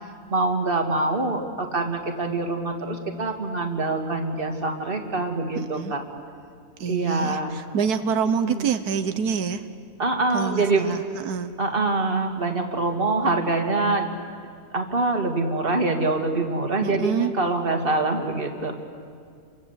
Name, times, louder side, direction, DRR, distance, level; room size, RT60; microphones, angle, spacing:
voice 1, 0.3-6.0 6.9-7.6 8.4-8.7 10.0-10.9 11.6-14.1 14.7-18.7, right 3 dB, 35° right, 3 dB, 2.4 m, -25 dB
voice 2, 5.6-5.9 6.8-9.6 10.3-11.5 16.8-17.3, right 6 dB, 90° right, 9 dB, 1.5 m, -26 dB
29.5 x 23.5 x 8.2 m, 2.2 s
omnidirectional pair, 1.6 m